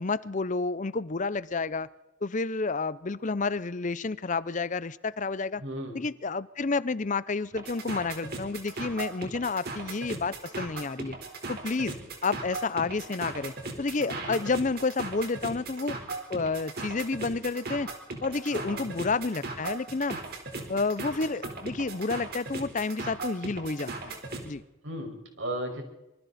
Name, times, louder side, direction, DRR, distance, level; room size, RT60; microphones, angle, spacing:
voice 1, 0.0-1.9 2.2-5.6 5.9-11.2 11.5-12.0 12.2-16.0 16.3-17.9 18.2-20.2 20.7-24.2 24.4-24.6, left 3 dB, 40° left, 17 dB, 0.6 m, -30 dB
voice 2, 5.6-6.0 14.0-14.4 18.5-18.9 24.8-25.8, right 1 dB, 70° right, 3 dB, 5.7 m, -36 dB
sound 1, 7.5-24.5, right 3 dB, 50° right, 4.3 m, -38 dB
26.5 x 24.0 x 4.3 m, 0.95 s
head